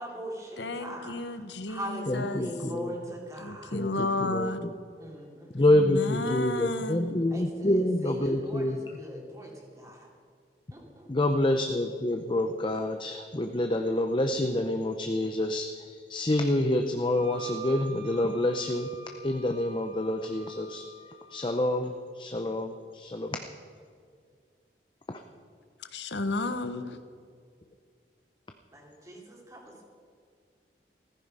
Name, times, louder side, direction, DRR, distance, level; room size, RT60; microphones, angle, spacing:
voice 1, 0.0-1.1 1.7-3.8 5.0-5.6 7.3-10.1 10.7-11.1 28.7-29.7, equal, 20° right, -1 dB, 2.9 m, -41 dB
voice 2, 0.6-2.4 3.4-4.6 5.7-7.3 25.9-27.0, left 2 dB, 90° left, 10 dB, 1.1 m, -32 dB
voice 3, 2.1-2.9 3.7-4.7 5.5-9.0 11.1-18.9 19.2-20.8 21.3-23.4 25.1-25.2, left 1 dB, 30° left, 6 dB, 0.7 m, -27 dB
Wind instrument woodwind instrument, 17.1-21.6, right 3 dB, 75° right, 4.6 m, -47 dB
15.5 x 14.5 x 5.5 m, 2.1 s
head